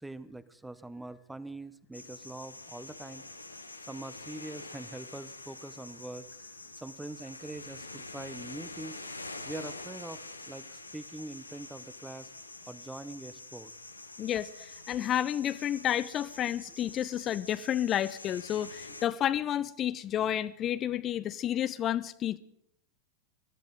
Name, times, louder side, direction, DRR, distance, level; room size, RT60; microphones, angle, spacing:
voice 1, 0.0-3.2 3.9-6.3 6.7-9.0 9.4-12.3 12.6-13.7, right 2 dB, 5° right, 16 dB, 0.7 m, -43 dB
sound 1, 1.9-19.1, left 2 dB, 85° left, 1.1 m, -46 dB
voice 2, 14.2-22.4, left 11 dB, 30° left, 14 dB, 0.5 m, -31 dB
23.0 x 13.0 x 4.0 m, 0.76 s
figure-of-eight pair, 90°, 0 cm